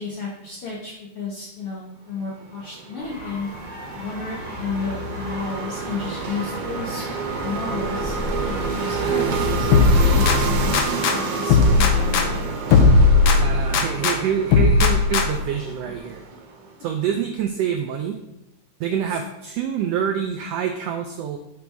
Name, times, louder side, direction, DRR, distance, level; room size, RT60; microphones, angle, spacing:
voice 1, 0.0-3.5 3.9-7.0 7.4-8.2 8.4-12.4, left 4 dB, 55° left, -5 dB, 1.9 m, -32 dB
sound 1, 2.4-16.8, right 5 dB, 65° right, 1.8 m, -29 dB
sound 2, 3.0-10.9, left 4 dB, 40° left, 1.6 m, -30 dB
sound 3, 9.7-11.2 11.5-14.2 14.5-15.5, left 4 dB, 80° left, 1.2 m, -17 dB
voice 2, 13.4-16.2 16.8-18.2 18.8-21.4, right 8 dB, 85° right, 5 dB, 1.4 m, -26 dB
10.0 x 5.2 x 3.4 m, 0.88 s
omnidirectional pair, 3.5 m